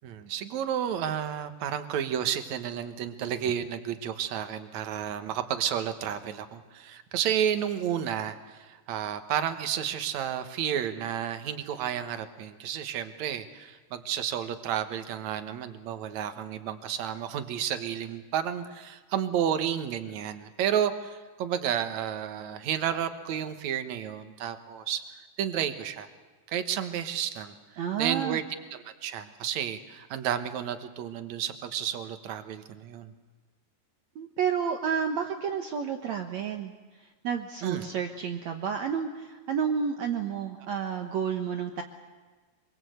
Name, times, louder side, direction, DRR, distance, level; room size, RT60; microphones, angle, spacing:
voice 1, 0.0-26.1 26.5-28.4 28.7-33.1 37.6-37.9, right 9 dB, 65° right, 9 dB, 1.9 m, -31 dB
voice 2, 27.8-28.4 34.1-36.7 37.2-41.8, right 7 dB, 80° right, 5 dB, 1.5 m, -30 dB
25.5 x 23.5 x 8.0 m, 1.4 s
omnidirectional pair, 5.0 m